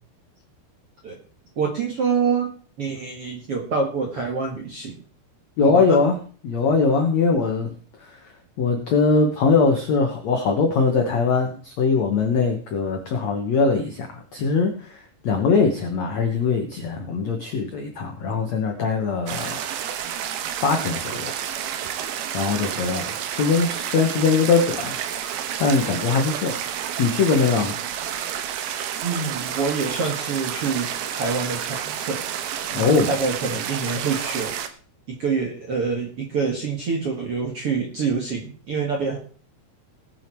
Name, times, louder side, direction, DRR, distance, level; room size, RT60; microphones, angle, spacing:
voice 1, 1.5-2.5 2.8-5.0 5.6-6.0 22.7-22.8 29.0-32.2 32.7-34.5 35.1-39.2, right 5 dB, 55° right, 1 dB, 1.6 m, -26 dB
voice 2, 5.6-6.1 6.4-7.7 8.0-8.2 8.6-19.6 20.6-21.3 22.3-25.0 25.6-26.6 27.0-27.7 32.7-33.1, left 4 dB, 80° left, 4 dB, 1.5 m, -21 dB
sound 1, 19.3-34.7, right 9 dB, 70° right, 2.6 m, -30 dB
19.5 x 7.1 x 4.6 m, 0.43 s
omnidirectional pair, 5.2 m